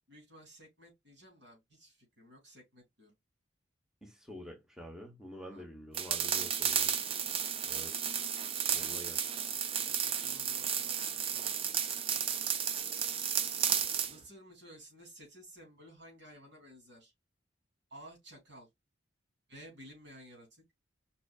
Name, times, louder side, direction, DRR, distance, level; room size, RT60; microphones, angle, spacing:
voice 1, 0.1-3.1 5.5-5.7 6.2-7.7 9.8-12.2 13.2-13.6 14.1-17.1 17.9-18.7 19.5-20.6, equal, 65° right, 3.3 m, -55 dB
voice 2, 4.0-7.1 7.6-8.1 8.7-9.3 9.6-9.8, equal, 5° right, 1.1 m, -48 dB
sound 1, 5.9-14.1, right 8 dB, 30° right, 0.4 m, -33 dB
5.4 x 4.0 x 2.3 m
head